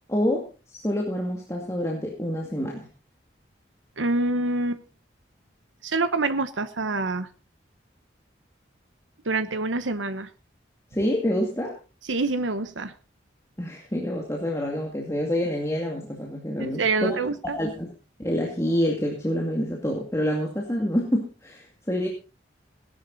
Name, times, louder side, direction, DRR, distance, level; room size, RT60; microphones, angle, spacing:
voice 1, 0.1-0.5 0.7-2.9 10.9-11.8 13.6-17.2 17.4-17.9 18.2-22.1, equal, 15° left, -1 dB, 2.3 m, -27 dB
voice 2, 4.0-4.8 5.8-7.3 9.2-10.3 12.1-12.9 16.6-17.6, right 3 dB, 85° right, 11 dB, 1.1 m, -26 dB
17.5 x 11.0 x 4.1 m, 0.33 s
head